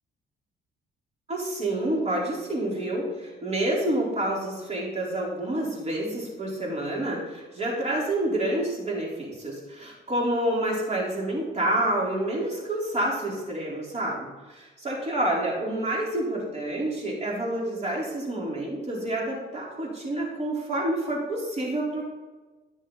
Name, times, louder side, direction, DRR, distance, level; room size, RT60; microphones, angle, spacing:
voice 1, 1.3-22.0, right 1 dB, 35° right, -4 dB, 4.2 m, -28 dB
16.0 x 6.5 x 4.1 m, 1.2 s
cardioid pair, 90°, 20 cm